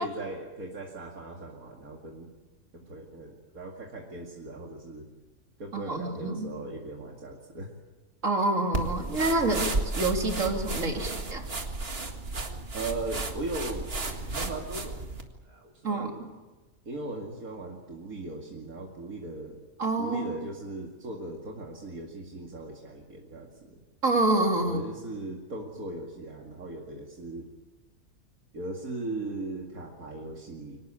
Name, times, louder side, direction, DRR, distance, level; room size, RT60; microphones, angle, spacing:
voice 1, 0.0-2.3 2.7-5.1 5.6-7.7 12.7-13.9 14.2-15.1 15.4-16.2 16.9-19.6 20.0-23.8 24.6-27.5 28.5-30.8, right 2 dB, 80° right, 0 dB, 2.7 m, -38 dB
voice 2, 5.7-6.6 8.2-11.5 15.8-16.3 19.8-20.4 24.0-24.8, right 2 dB, 65° right, 2 dB, 3.4 m, -27 dB
sound 1, 8.7-15.2, right 3 dB, 45° right, 2.1 m, -33 dB
24.5 x 18.5 x 8.8 m, 1.2 s
omnidirectional pair, 1.5 m